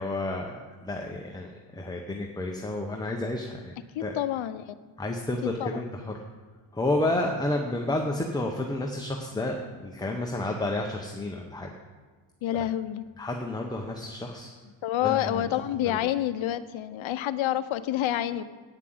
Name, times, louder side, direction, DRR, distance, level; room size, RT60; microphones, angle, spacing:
voice 1, 0.0-3.7 4.0-4.2 5.0-6.0 6.7-11.7 12.5-12.6 13.2-14.5 15.0-15.5 15.8-16.0, left 2 dB, 10° left, 1 dB, 0.8 m, -31 dB
voice 2, 3.9-4.6 5.6-5.8 12.4-13.0 14.8-18.4, left 12 dB, 85° left, 13 dB, 0.7 m, -28 dB
9.1 x 7.6 x 7.8 m, 1.4 s
cardioid pair, 125°, 46 cm